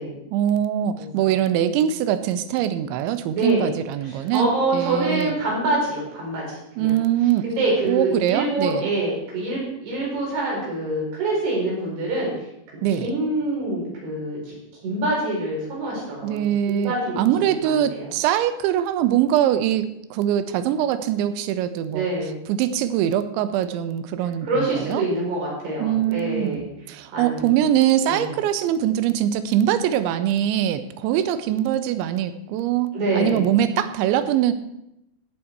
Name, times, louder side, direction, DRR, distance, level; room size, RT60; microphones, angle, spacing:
voice 1, 0.3-5.4 6.8-7.4 7.8-8.9 12.8-13.1 16.2-22.1 22.5-25.0 25.8-34.5, right 11 dB, 80° right, 12 dB, 2.9 m, -23 dB
voice 2, 1.0-1.3 3.3-3.7 4.1-6.9 7.4-12.3 13.0-14.5 14.8-17.2 17.5-18.0 21.9-22.3 24.4-26.7 27.1-27.6 28.0-28.3 32.9-33.5, right 2 dB, 55° right, -4 dB, 6.5 m, -25 dB
17.0 x 7.3 x 4.7 m, 0.84 s
omnidirectional pair, 5.5 m